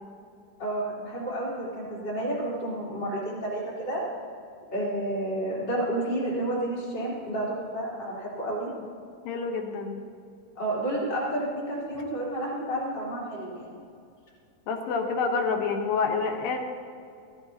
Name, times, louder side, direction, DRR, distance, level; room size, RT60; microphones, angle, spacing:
voice 1, 0.6-4.0 4.7-8.7 10.6-13.8, right 1 dB, 25° left, -7 dB, 3.8 m, -30 dB
voice 2, 9.2-10.0 14.7-16.6, left 4 dB, 70° left, 4 dB, 2.7 m, -28 dB
15.5 x 15.5 x 2.9 m, 2.4 s
omnidirectional pair, 4.4 m